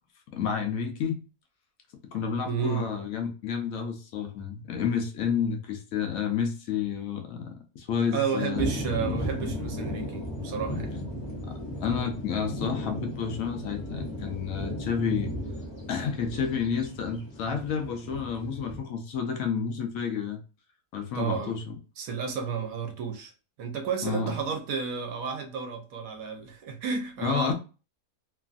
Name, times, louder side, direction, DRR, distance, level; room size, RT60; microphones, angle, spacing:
voice 1, 0.3-1.2 2.1-8.7 11.4-15.3 15.9-20.4 20.9-21.8 24.0-24.3 27.2-27.5, left 6 dB, 70° left, 0.9 m, -30 dB
voice 2, 2.5-2.9 8.1-11.0 21.1-21.6 22.0-23.3 23.6-27.5, right 6 dB, 75° right, 1.1 m, -32 dB
sound 1, 8.5-18.8, left 1 dB, 30° left, 0.5 m, -35 dB
3.0 x 2.5 x 2.4 m
omnidirectional pair, 1.6 m